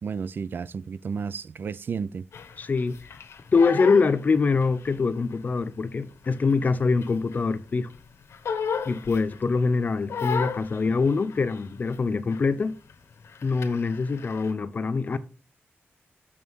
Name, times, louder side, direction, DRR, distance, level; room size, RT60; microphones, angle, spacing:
voice 1, 0.0-2.3, right 6 dB, 50° right, 0.4 m, -32 dB
Crying sobbing, 2.3-5.0 5.3-7.6 7.9-9.6 10.1-12.0 12.3-12.6 12.9-14.5, left 6 dB, 85° left, 1.0 m, -34 dB
voice 2, 2.6-3.1 3.5-7.9 8.9-12.8 13.4-15.2, left 4 dB, 40° left, 0.7 m, -24 dB
6.8 x 5.5 x 6.2 m
wide cardioid pair, 175°, 4 cm